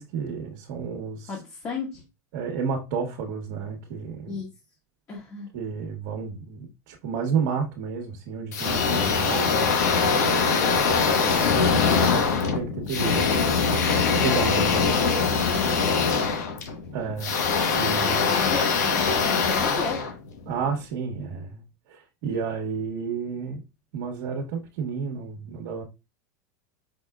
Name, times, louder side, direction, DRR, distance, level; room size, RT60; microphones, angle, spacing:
voice 1, 0.0-1.3 2.3-4.4 5.5-13.3 13.7-14.9 16.9-17.3 17.7-18.3 20.5-21.6 21.9-23.6 23.9-25.8, right 6 dB, 65° right, 1.3 m, -31 dB
voice 2, 1.3-2.0 4.3-4.5 5.1-5.5 14.4-16.0 18.0-20.1, left 4 dB, 30° left, 1.6 m, -34 dB
sound 1, 8.5-20.7, left 5 dB, 90° left, 1.2 m, -23 dB
5.3 x 4.2 x 2.4 m
supercardioid pair, 130°, 9 cm